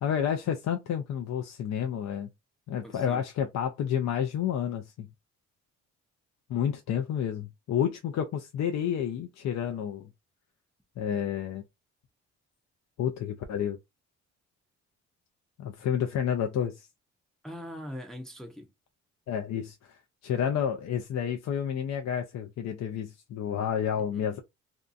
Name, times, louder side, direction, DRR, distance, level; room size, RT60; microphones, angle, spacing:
voice 1, 0.0-2.3 2.7-5.1 6.5-10.1 11.0-11.6 13.0-13.8 15.6-16.9 19.3-24.4, left 8 dB, 65° left, 0.5 m, -30 dB
voice 2, 2.8-3.2 17.4-18.7 24.0-24.3, equal, ahead, 0.6 m, -42 dB
2.7 x 2.3 x 2.4 m
cardioid pair, 90°, 30 cm